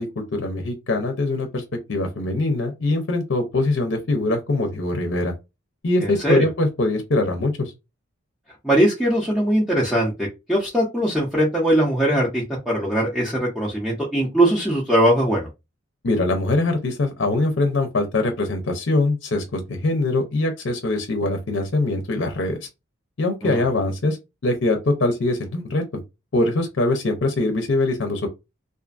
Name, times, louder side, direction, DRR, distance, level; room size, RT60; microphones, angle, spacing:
voice 1, 0.0-1.6 1.9-5.3 5.8-7.7 16.0-22.7 23.2-24.2 24.4-25.8 26.3-28.3, left 2 dB, 60° left, 0.5 m, -22 dB
voice 2, 6.0-6.5 8.6-15.5 23.4-23.6, right 1 dB, ahead, 0.6 m, -21 dB
2.5 x 2.4 x 2.4 m
head